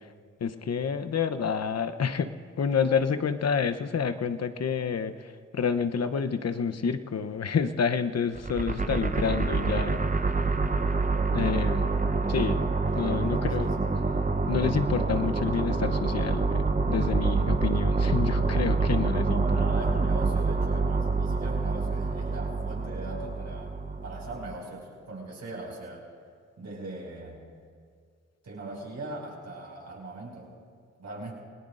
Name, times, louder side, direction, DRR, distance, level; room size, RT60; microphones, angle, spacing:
voice 1, 0.4-2.3 2.6-5.1 5.5-10.1 11.3-11.9 12.3-12.7 13.0-13.7 14.5-19.4, left 6 dB, 55° left, 9 dB, 0.9 m, -28 dB
sound 1, 8.3-24.5, right 3 dB, 25° right, 0.9 m, -27 dB
voice 2, 13.0-13.9 19.3-23.7 24.0-26.1 26.6-27.4 28.4-30.5 31.0-31.3, right 2 dB, 65° right, -2 dB, 5.8 m, -40 dB
28.5 x 19.0 x 2.6 m, 2.1 s
supercardioid pair, 45°, 30 cm